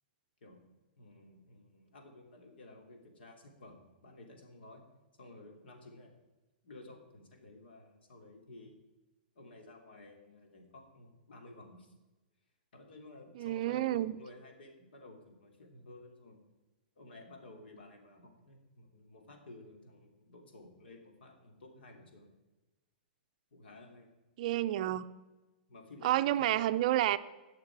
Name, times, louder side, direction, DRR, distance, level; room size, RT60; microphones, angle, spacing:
voice 1, 1.0-4.8 5.2-6.1 6.6-8.7 9.3-11.9 12.7-16.4 17.0-22.3 23.5-24.1 25.7-26.5, left 2 dB, 85° left, 3 dB, 3.1 m, -54 dB
voice 2, 13.4-14.1 24.4-25.0 26.0-27.2, right 14 dB, 45° right, 13 dB, 0.5 m, -29 dB
19.0 x 6.7 x 4.8 m, 1.1 s
hypercardioid pair, 160°, 5 cm